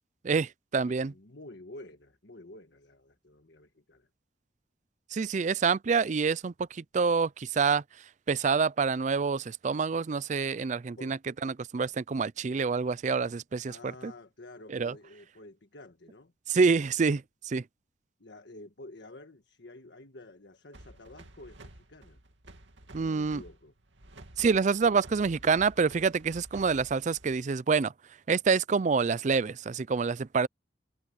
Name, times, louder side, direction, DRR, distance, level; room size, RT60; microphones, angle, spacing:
voice 1, 0.2-1.1 5.1-7.8 8.3-11.2 11.4-13.8 14.0-14.1 14.7-14.9 16.5-17.2 17.5-17.6 22.9-23.4 24.4-27.9 28.3-30.5, right 5 dB, 40° right, 0.4 m, -27 dB
voice 2, 0.8-4.1 11.0-11.2 13.7-16.3 18.2-22.2 22.9-23.7, left 2 dB, 70° left, 1.6 m, -50 dB
sound 1, 20.7-27.5, right 1 dB, 85° right, 2.5 m, -52 dB
head